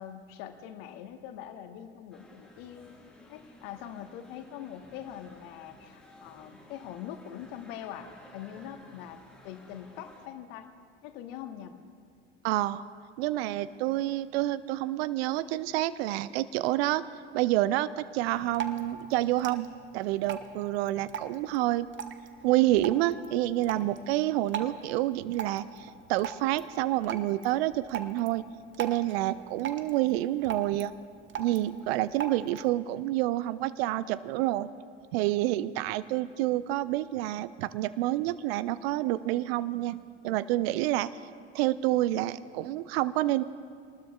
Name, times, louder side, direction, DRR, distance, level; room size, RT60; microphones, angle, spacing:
voice 1, 0.0-3.0 3.3-10.7 11.0-11.8 20.6-20.9, left 10 dB, 60° left, 7 dB, 1.3 m, -43 dB
sound 1, 2.1-10.3, left 1 dB, 5° left, 3.9 m, -55 dB
voice 2, 12.4-12.8 13.2-17.0 17.3-19.7 19.9-21.9 22.4-28.4 28.8-30.9 31.4-34.7 35.1-41.1 41.5-43.4, right 15 dB, 60° right, 16 dB, 0.6 m, -28 dB
Drip, 18.2-32.7, right 7 dB, 35° right, 1.1 m, -42 dB
25.5 x 19.5 x 2.4 m, 2.2 s
figure-of-eight pair, 65°, 34 cm